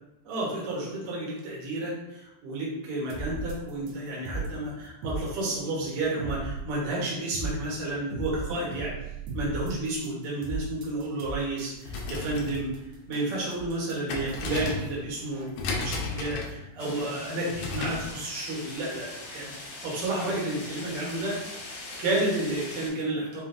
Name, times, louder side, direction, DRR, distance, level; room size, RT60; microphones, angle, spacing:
voice 1, 0.2-9.0 9.3-12.7 13.1-21.4 22.0-23.4, right 2 dB, 60° right, -5 dB, 1.6 m, -31 dB
sound 1, 3.1-15.4, right 3 dB, 85° right, 1.6 m, -37 dB
sound 2, 11.7-18.1, left 3 dB, 75° left, 2.0 m, -35 dB
sound 3, 16.8-22.9, left 2 dB, 60° left, 1.8 m, -41 dB
5.6 x 2.5 x 2.6 m, 0.87 s
omnidirectional pair, 3.9 m